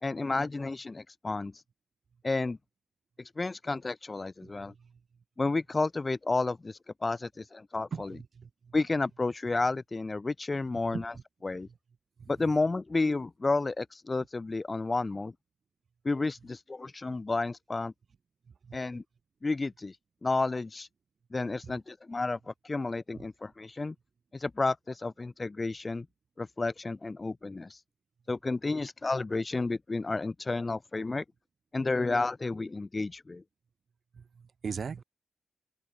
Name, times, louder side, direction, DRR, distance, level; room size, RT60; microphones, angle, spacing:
voice 1, 0.0-1.5 2.2-2.6 3.4-4.7 5.4-8.1 8.7-11.1 11.4-11.7 12.3-15.3 16.0-17.9 18.7-19.0 19.4-20.0 20.2-20.9 21.3-23.9 24.3-26.1 26.4-27.8 28.3-31.2 31.7-33.4, left 3 dB, 20° left, 0.9 m, -31 dB
voice 2, 4.4-5.0 7.9-8.7 10.9-11.1 11.6-11.7 12.2-12.3 18.5-19.0 21.6-21.8 23.2-23.3 34.1-35.0, right 6 dB, 45° right, 3.6 m, -41 dB
wide cardioid pair, 170°, 0 cm